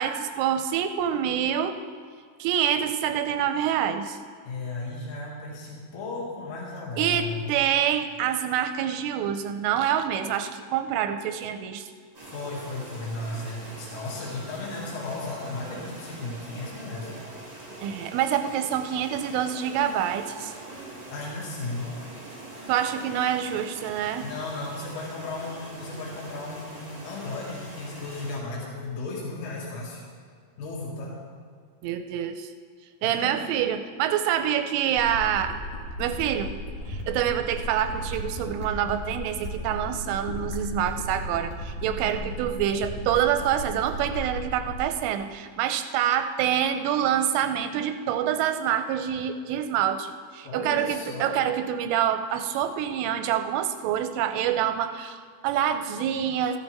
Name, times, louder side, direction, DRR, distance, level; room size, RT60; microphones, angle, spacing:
voice 1, 0.0-1.8 2.4-4.2 7.0-11.9 17.8-20.5 22.7-24.3 31.8-32.5 33.0-35.6 36.0-36.5 36.9-56.6, right 9 dB, 85° right, 8 dB, 2.9 m, -26 dB
voice 2, 4.4-7.5 12.3-17.1 21.1-21.9 24.2-30.0 30.6-31.2 33.0-33.4 50.4-51.4, left 3 dB, 75° left, -4 dB, 4.9 m, -35 dB
sound 1, 12.1-28.4, right 2 dB, 20° right, 1.0 m, -43 dB
sound 2, 35.0-45.0, equal, 55° left, 3.1 m, -35 dB
14.5 x 13.5 x 3.5 m, 2.1 s
omnidirectional pair, 5.9 m